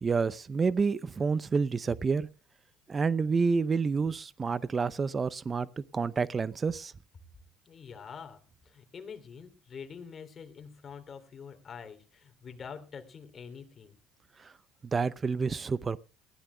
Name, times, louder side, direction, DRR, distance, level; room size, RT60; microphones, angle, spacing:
voice 1, 0.0-2.3 2.9-6.9 14.9-16.0, right 5 dB, 30° right, 0.6 m, -29 dB
voice 2, 7.6-13.9, left 6 dB, 40° left, 3.1 m, -46 dB
20.0 x 15.5 x 2.3 m
hypercardioid pair, 70°, 0 cm